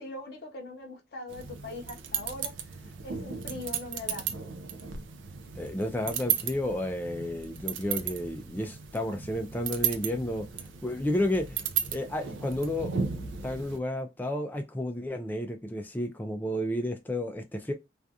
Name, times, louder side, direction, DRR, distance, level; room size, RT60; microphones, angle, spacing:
voice 1, 0.0-4.5, left 2 dB, 60° left, 0.6 m, -41 dB
sound 1, 1.3-13.8, right 8 dB, 80° right, 0.4 m, -35 dB
voice 2, 5.6-10.5 10.8-11.6 11.9-12.9 13.2-17.7, left 1 dB, 10° left, 0.3 m, -31 dB
2.4 x 2.3 x 2.6 m
head